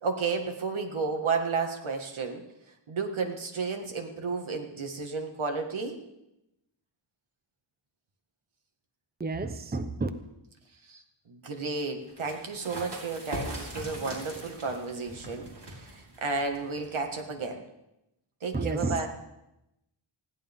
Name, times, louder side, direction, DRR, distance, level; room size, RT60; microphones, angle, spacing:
voice 1, 0.0-2.4 2.9-6.0 10.9-17.6 18.4-19.1, right 4 dB, 80° right, 4 dB, 2.0 m, -32 dB
voice 2, 9.2-10.1 18.5-19.1, right 3 dB, 20° right, 9 dB, 0.8 m, -30 dB
sound 1, 12.0-17.4, right 1 dB, 55° right, 5.2 m, -41 dB
20.5 x 15.5 x 3.7 m, 0.89 s
wide cardioid pair, 140°, 48 cm